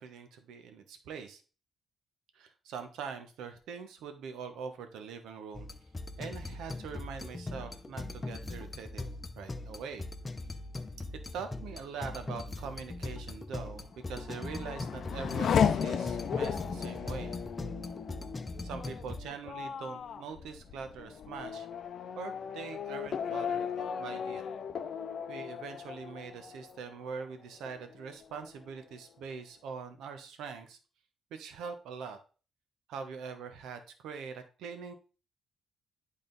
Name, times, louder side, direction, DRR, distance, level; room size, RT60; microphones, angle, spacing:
voice 1, 0.0-1.4 2.3-5.7 6.2-9.1 9.4-10.1 11.3-17.4 18.6-21.7 22.2-24.4 25.3-30.8 31.3-32.2 32.9-34.9, right 6 dB, 85° right, 7 dB, 1.0 m, -43 dB
sound 1, 5.5-19.2, left 2 dB, 25° left, 0.8 m, -41 dB
Race car auto racing / Accelerating revving vroom, 14.0-27.3 27.7-28.4, left 7 dB, 65° left, 0.5 m, -35 dB
8.8 x 3.7 x 3.9 m, 0.36 s
cardioid pair, 75°, 0 cm